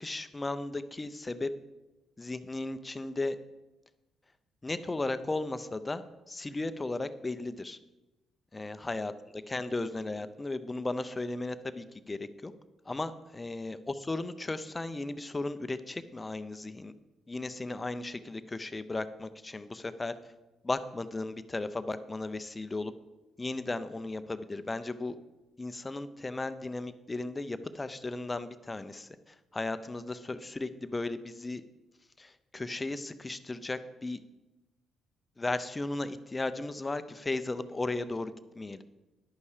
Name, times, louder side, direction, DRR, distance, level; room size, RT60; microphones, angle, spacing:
voice 1, 0.0-1.5 2.2-3.4 4.6-7.8 8.5-9.1 9.5-12.5 12.9-16.9 17.3-20.1 20.6-22.9 23.4-25.1 25.6-31.6 32.2-34.2 35.4-38.8, left 2 dB, 20° left, 11 dB, 0.6 m, -35 dB
11.0 x 8.5 x 4.9 m, 1.0 s
cardioid pair, 90°, 0 cm